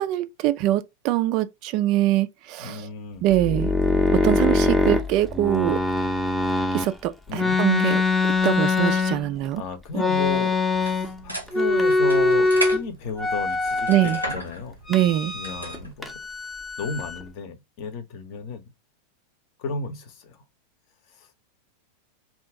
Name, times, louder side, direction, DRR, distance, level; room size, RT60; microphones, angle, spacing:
voice 1, 0.0-2.8 3.2-3.7 4.1-5.8 6.7-8.0 8.4-9.6 9.9-10.0 13.9-14.2 14.9-15.3, right 14 dB, 40° right, 0.3 m, -23 dB
voice 2, 2.6-3.2 7.3-7.6 9.6-10.6 10.8-14.8 15.3-16.2 16.8-18.6 19.6-20.4 21.1-21.3, left 4 dB, 45° left, 0.7 m, -33 dB
sound 1, 3.3-6.9 7.3-9.5 9.9-11.2 11.5-12.8 13.2-14.3 14.9-15.8 16.0-17.2, left 3 dB, 5° left, 0.6 m, -23 dB
sound 2, 10.7-15.9, right 1 dB, 90° right, 1.0 m, -36 dB
2.8 x 2.4 x 3.5 m
figure-of-eight pair, 90°, 0 cm